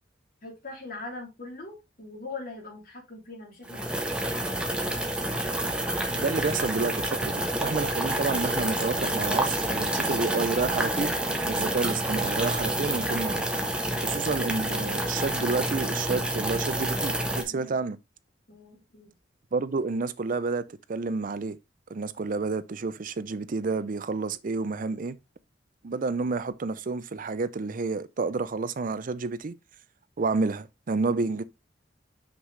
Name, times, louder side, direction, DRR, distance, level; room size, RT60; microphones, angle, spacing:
voice 1, 0.4-4.7 17.5-17.8 18.5-19.1, left 3 dB, 55° left, 2.9 m, -42 dB
sound 1, 3.6-17.4, right 1 dB, 5° right, 1.1 m, -28 dB
voice 2, 6.1-11.1 11.5-13.5 14.0-18.0 19.5-21.6 21.9-25.2 25.8-29.5 30.2-31.4, right 4 dB, 50° right, 0.5 m, -30 dB
6.0 x 5.6 x 3.2 m
head